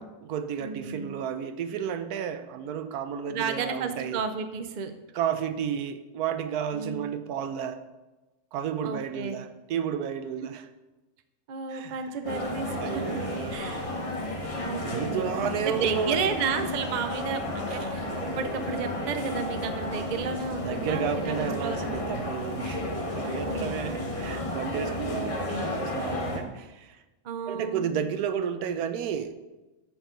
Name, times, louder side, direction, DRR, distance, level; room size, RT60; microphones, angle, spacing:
voice 1, 0.0-4.2 5.1-7.8 8.5-10.7 11.7-12.2 12.8-13.9 14.8-16.3 17.7-17.9 20.6-25.2 25.8-27.0 27.5-29.3, right 8 dB, 85° right, 10 dB, 1.1 m, -32 dB
voice 2, 0.6-1.2 3.3-4.9 6.7-7.1 8.8-9.4 10.4-10.5 11.5-13.0 13.5-13.9 14.6-15.3 15.6-18.1 18.4-22.1 23.2-23.9 24.8-25.7 27.2-27.9, right 6 dB, 45° right, 8 dB, 0.6 m, -33 dB
sound 1, 12.2-26.4, left 1 dB, 25° left, 1.0 m, -32 dB
13.5 x 4.7 x 3.8 m, 1.1 s
omnidirectional pair, 1.6 m